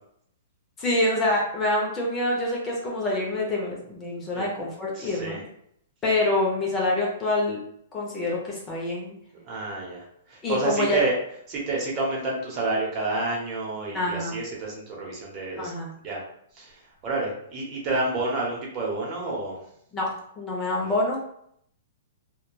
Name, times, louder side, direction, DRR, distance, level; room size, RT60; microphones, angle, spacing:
voice 1, 0.8-5.4 6.0-7.6 7.9-9.1 10.4-11.0 13.9-14.4 15.6-15.9 19.9-20.1 20.4-21.2, left 1 dB, 20° left, -3 dB, 0.6 m, -26 dB
voice 2, 4.9-5.4 9.4-11.1 11.5-15.7 16.0-16.2 16.5-19.6 20.8-20.9, right 2 dB, 30° right, -3 dB, 0.8 m, -29 dB
2.8 x 2.2 x 2.3 m, 0.71 s
hypercardioid pair, 140°, 0 cm